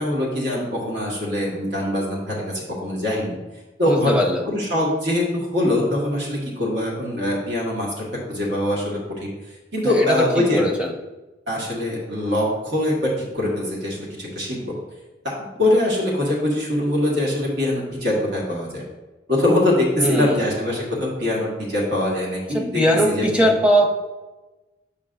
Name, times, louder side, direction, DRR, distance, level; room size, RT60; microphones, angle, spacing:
voice 1, 0.0-3.4 3.8-9.3 9.7-10.6 11.5-14.7 15.2-15.3 15.6-18.8 19.3-22.8 23.1-23.5, left 1 dB, 70° right, -3 dB, 1.5 m, -23 dB
voice 2, 3.8-4.4 10.0-10.9 20.0-20.5 22.5-23.9, equal, 5° right, 0 dB, 0.8 m, -20 dB
7.5 x 5.2 x 2.5 m, 1.1 s
head